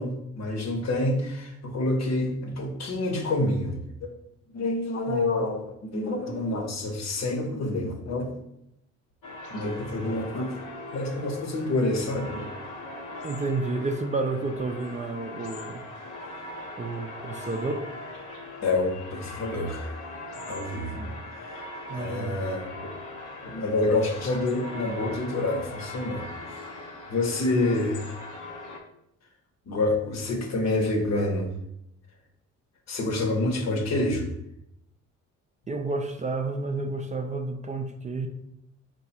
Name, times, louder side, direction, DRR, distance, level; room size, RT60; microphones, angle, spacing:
voice 1, 0.0-4.1 4.5-8.4 9.5-10.5 10.9-12.5 17.4-17.5 18.6-20.0 20.5-21.0 21.5-21.6 21.9-22.9 23.4-26.2 26.5-26.7 27.1-28.2 29.7-31.5 32.9-34.3, left 2 dB, 60° left, 3 dB, 0.9 m, -28 dB
voice 2, 5.1-5.5 13.2-15.8 16.8-17.9 20.9-21.2 21.9-22.4 35.7-38.3, right 3 dB, 25° right, 5 dB, 0.4 m, -31 dB
sound 1, 9.2-28.8, left 2 dB, 85° left, 0.8 m, -40 dB
4.7 x 2.3 x 4.1 m, 0.80 s
cardioid pair, 90°, 30 cm